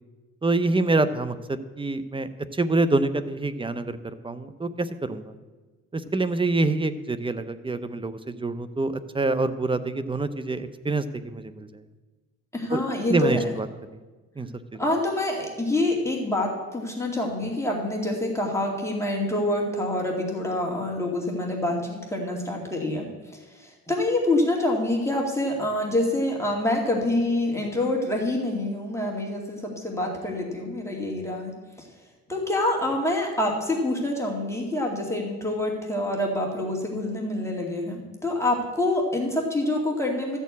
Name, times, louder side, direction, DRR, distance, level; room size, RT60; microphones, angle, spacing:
voice 1, 0.4-5.3 5.9-11.7 12.7-12.8 13.1-13.7 14.4-14.8, right 2 dB, 15° right, 12 dB, 0.7 m, -26 dB
voice 2, 12.5-13.4 14.8-23.1 23.3-31.5 31.8-31.9 32.3-40.4, left 1 dB, 10° left, -1 dB, 2.3 m, -26 dB
13.5 x 4.6 x 8.4 m, 1.2 s
cardioid pair, 90°, 30 cm